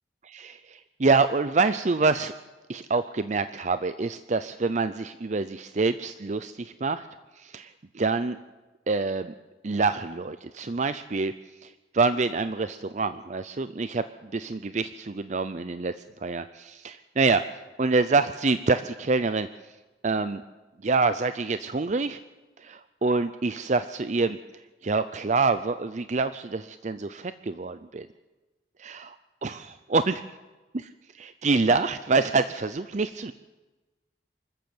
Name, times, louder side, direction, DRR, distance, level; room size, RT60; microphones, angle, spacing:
voice 1, 0.2-2.3 2.7-7.1 7.4-8.4 8.9-9.3 9.6-11.3 11.6-14.0 14.3-15.9 16.2-17.4 17.8-19.5 20.0-20.4 20.8-22.2 22.6-24.4 24.8-28.1 28.8-29.1 29.4-30.1 30.7-30.9 31.2-33.3, right 3 dB, 40° right, 12 dB, 0.6 m, -26 dB
25.0 x 14.0 x 7.9 m, 1.2 s
head